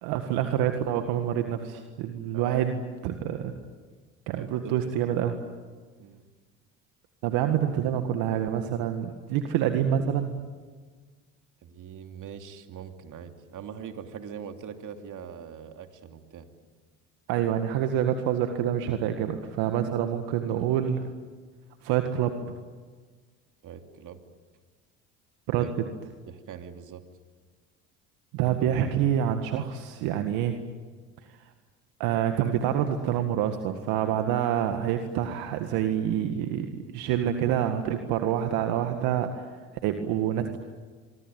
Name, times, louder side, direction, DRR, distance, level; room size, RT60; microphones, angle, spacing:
voice 1, 0.0-3.5 4.3-5.4 7.2-10.4 17.3-21.0 21.8-22.5 25.5-25.7 28.3-30.5 32.0-39.4 39.8-40.6, right 10 dB, 70° right, 6 dB, 1.9 m, -27 dB
voice 2, 2.3-2.6 4.4-4.9 6.0-6.2 11.6-16.5 23.6-24.2 25.6-25.7 26.3-27.0, right 8 dB, 55° right, 6 dB, 2.9 m, -42 dB
25.0 x 24.5 x 9.3 m, 1.5 s
hypercardioid pair, 70°, 38 cm